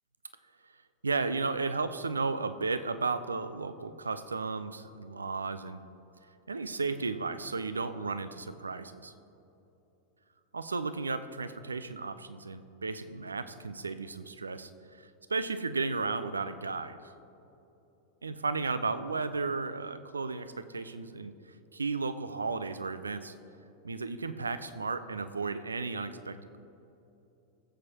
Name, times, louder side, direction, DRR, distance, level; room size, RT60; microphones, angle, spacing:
voice 1, 1.0-5.8 6.5-9.1 10.5-14.7 15.0-17.0 18.2-21.4 21.7-23.3 23.8-26.6, right 4 dB, 75° right, 12 dB, 0.5 m, -34 dB
18.5 x 7.9 x 2.9 m, 2.9 s
figure-of-eight pair, 90°, 0 cm